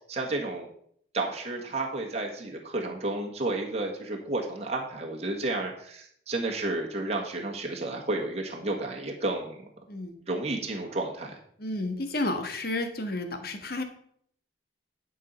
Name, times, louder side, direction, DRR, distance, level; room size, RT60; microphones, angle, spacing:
voice 1, 0.1-0.7 1.1-9.6 10.3-11.4, right 2 dB, 35° right, 0 dB, 1.5 m, -31 dB
voice 2, 11.6-13.8, left 2 dB, 55° left, 7 dB, 1.4 m, -31 dB
11.0 x 5.5 x 5.4 m, 0.65 s
head